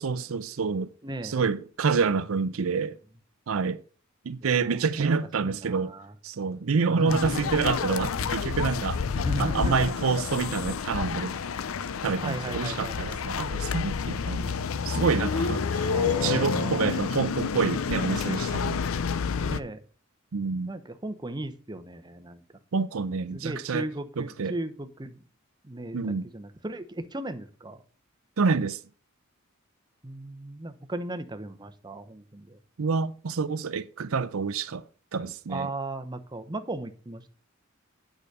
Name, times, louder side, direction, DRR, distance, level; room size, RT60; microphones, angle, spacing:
voice 1, 0.0-0.9 1.2-3.0 3.5-3.8 4.2-5.9 6.2-9.0 9.4-11.3 12.0-15.9 16.2-18.8 20.3-20.7 22.7-23.9 24.2-24.5 25.9-26.3 28.4-28.8 32.8-34.8 35.1-35.7, right 5 dB, 80° right, 0.6 m, -27 dB
voice 2, 1.0-1.4 4.4-4.8 5.4-6.1 6.9-7.8 9.1-10.2 12.2-13.2 15.9-16.9 19.4-19.8 20.7-22.4 23.3-25.2 25.6-26.0 26.3-27.8 30.0-32.6 35.5-37.3, right 2 dB, 20° right, 0.8 m, -36 dB
sound 1, 7.1-19.6, left 6 dB, 80° left, 0.5 m, -29 dB
9.0 x 5.0 x 6.7 m
head